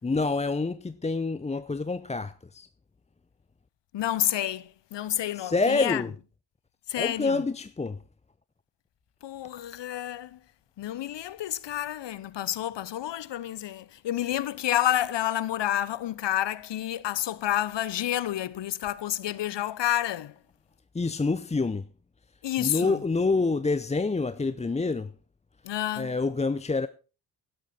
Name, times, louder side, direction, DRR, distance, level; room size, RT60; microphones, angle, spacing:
voice 1, 0.0-2.7 5.3-6.1 7.0-8.0 20.9-21.9 22.6-25.1 26.0-26.9, left 3 dB, 15° left, 0.5 m, -27 dB
voice 2, 3.9-6.0 6.9-7.4 9.2-10.4 10.8-20.3 22.4-23.0 25.6-26.1, left 12 dB, 65° left, 0.8 m, -29 dB
12.0 x 11.5 x 4.2 m
cardioid pair, 55°, 46 cm